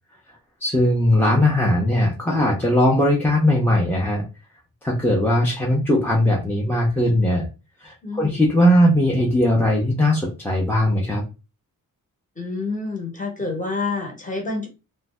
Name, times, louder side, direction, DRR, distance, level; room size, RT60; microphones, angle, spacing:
voice 1, 0.6-4.2 4.8-7.5 7.8-11.2, left 1 dB, 5° left, -3 dB, 0.5 m, -19 dB
voice 2, 8.0-8.4 12.4-14.7, left 3 dB, 20° left, 1 dB, 0.9 m, -28 dB
2.6 x 2.1 x 3.2 m, 0.30 s
wide cardioid pair, 130°, 35 cm